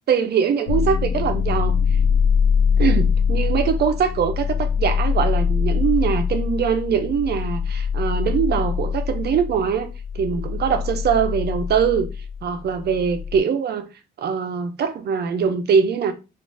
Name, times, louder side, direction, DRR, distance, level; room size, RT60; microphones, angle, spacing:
voice 1, 0.1-1.8 2.8-9.9 10.1-12.1 12.4-13.9 14.2-16.1, right 7 dB, 55° right, 0.5 m, -22 dB
sound 1, 0.7-13.4, left 6 dB, 75° left, 0.4 m, -23 dB
2.4 x 2.4 x 3.2 m
cardioid pair, 90°, 20 cm